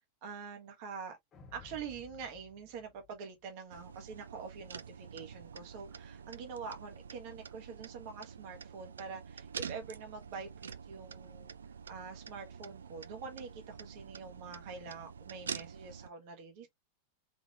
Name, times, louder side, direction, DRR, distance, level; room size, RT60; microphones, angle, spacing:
voice 1, 0.2-1.2 1.5-11.5 11.9-16.7, right 5 dB, 45° right, 1.4 m, -45 dB
sound 1, 1.3-3.8, left 7 dB, 30° left, 1.1 m, -56 dB
sound 2, 3.7-16.1, right 6 dB, 70° right, 0.4 m, -47 dB
3.8 x 3.7 x 2.5 m
figure-of-eight pair, 90°, 0 cm